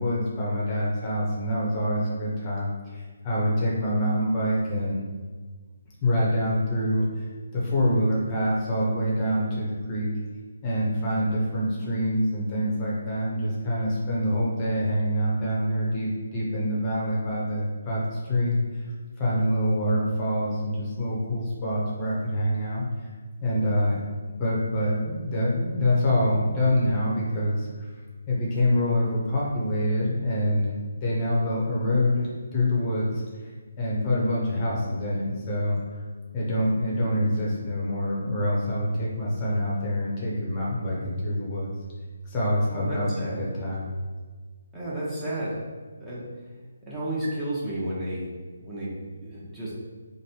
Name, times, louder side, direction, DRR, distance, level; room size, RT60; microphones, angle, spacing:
voice 1, 0.0-5.0 6.0-7.2 7.5-10.1 10.6-18.9 19.2-22.9 23.4-27.7 28.3-30.7 31.0-33.5 33.8-36.0 36.3-41.7 42.2-43.9, equal, 25° left, -6 dB, 0.9 m, -26 dB
voice 2, 42.7-43.4 44.7-45.5 46.0-46.2 46.9-48.2 48.6-48.9 49.2-49.7, right 1 dB, 10° right, -9 dB, 1.0 m, -31 dB
3.1 x 2.6 x 4.4 m, 1.5 s
figure-of-eight pair, 145°, 0 cm